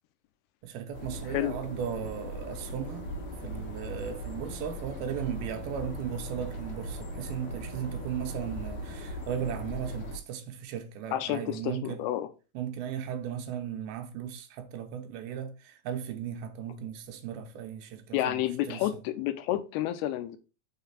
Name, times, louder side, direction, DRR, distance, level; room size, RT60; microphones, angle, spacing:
voice 1, 0.6-3.1 3.4-12.0 12.5-18.9, right 8 dB, 80° right, 2.6 m, -36 dB
sound 1, 0.9-10.2, equal, 60° left, 3.0 m, -39 dB
voice 2, 11.1-12.3 18.1-20.4, left 13 dB, 85° left, 2.6 m, -30 dB
6.3 x 4.0 x 5.6 m
omnidirectional pair, 4.6 m